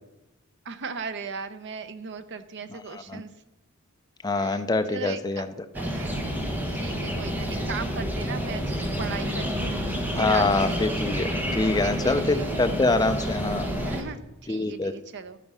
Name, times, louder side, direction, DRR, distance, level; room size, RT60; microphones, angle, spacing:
voice 1, 0.6-3.3 4.3-5.4 5.7-6.3 6.8-11.2 11.8-12.6 13.8-15.4, right 5 dB, 55° right, 11 dB, 0.7 m, -37 dB
voice 2, 2.9-3.2 4.2-5.5 10.1-13.7 14.5-14.9, left 3 dB, 15° left, 10 dB, 0.5 m, -25 dB
sound 1, 5.7-14.0, equal, 10° right, 1.3 m, -29 dB
12.5 x 6.0 x 5.5 m, 1.0 s
head